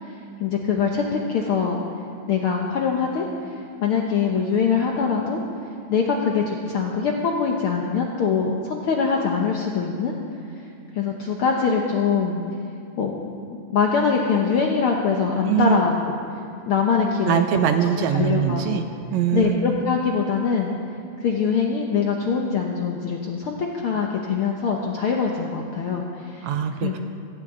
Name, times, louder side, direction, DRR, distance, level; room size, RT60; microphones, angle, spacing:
voice 1, 0.0-1.8 2.3-5.4 5.9-10.2 10.6-10.7 10.9-12.4 13.0-13.2 13.7-16.1 16.6-17.6 18.1-18.8 19.3-20.7 21.2-26.5 26.8-27.0, left 5 dB, 70° left, 0 dB, 1.3 m, -23 dB
voice 2, 15.4-15.8 17.2-18.8 19.1-19.6 26.4-27.0, right 9 dB, 75° right, 7 dB, 1.8 m, -22 dB
17.0 x 15.5 x 3.8 m, 2.5 s
omnidirectional pair, 3.6 m